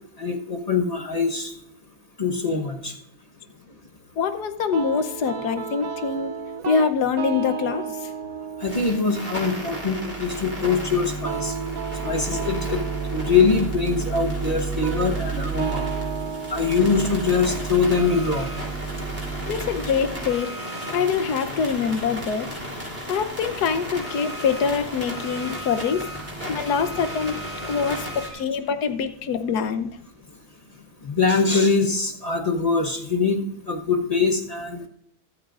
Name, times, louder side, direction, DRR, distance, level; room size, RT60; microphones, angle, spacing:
voice 1, 0.2-1.5 2.2-2.9 8.6-11.5 12.0-12.8 13.1-15.8 16.5-18.5 31.0-34.9, left 4 dB, 30° left, 3 dB, 1.0 m, -23 dB
voice 2, 4.2-6.3 6.7-8.1 19.5-20.5 20.9-22.5 23.1-26.1 26.5-27.4 27.6-29.9, left 6 dB, 80° left, 10 dB, 1.4 m, -24 dB
sound 1, 4.7-19.7, right 6 dB, 80° right, 0.3 m, -35 dB
sound 2, 8.6-28.3, right 2 dB, 10° right, 3.1 m, -32 dB
14.0 x 13.0 x 2.5 m, 0.70 s
omnidirectional pair, 1.7 m